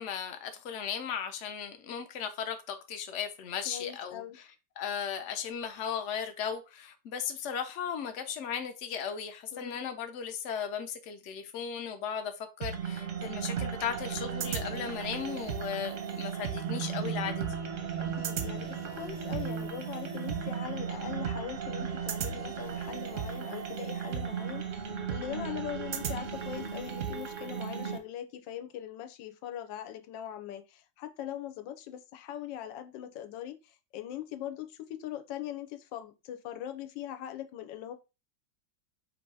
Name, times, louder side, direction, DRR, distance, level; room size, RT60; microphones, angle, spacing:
voice 1, 0.0-4.5 4.8-17.6, left 7 dB, 60° left, 0.7 m, -36 dB
voice 2, 3.7-4.4 9.5-9.9 18.0-37.9, left 10 dB, 85° left, 1.3 m, -41 dB
sound 1, 12.6-28.0, right 7 dB, 60° right, 0.8 m, -35 dB
3.7 x 2.7 x 4.6 m
omnidirectional pair, 2.0 m